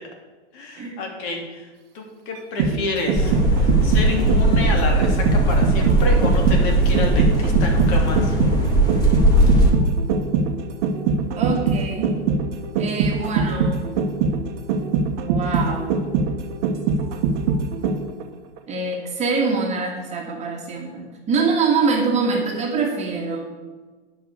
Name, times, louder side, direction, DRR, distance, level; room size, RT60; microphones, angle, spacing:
voice 1, 0.5-1.6 1.9-8.4, left 2 dB, 40° left, 1 dB, 2.9 m, -29 dB
sound 1, 2.3-18.2 18.6-18.7, right 4 dB, 40° right, 1.3 m, -22 dB
sound 2, 3.1-9.7, right 1 dB, 10° left, 2.5 m, -18 dB
voice 2, 11.4-12.2 12.8-14.0 15.2-16.0 18.7-23.5, right 4 dB, 20° right, 0 dB, 1.7 m, -24 dB
10.5 x 5.7 x 8.4 m, 1.3 s
hypercardioid pair, 125°, 32 cm